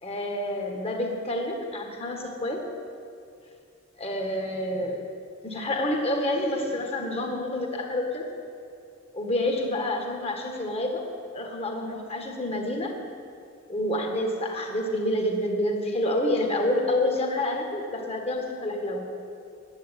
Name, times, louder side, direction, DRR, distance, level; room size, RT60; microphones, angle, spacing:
voice 1, 0.0-2.6 4.0-5.0 5.4-8.2 9.1-11.0 11.3-12.9 13.7-19.0, left 1 dB, 30° left, 2 dB, 1.8 m, -28 dB
10.5 x 8.2 x 10.0 m, 2.4 s
head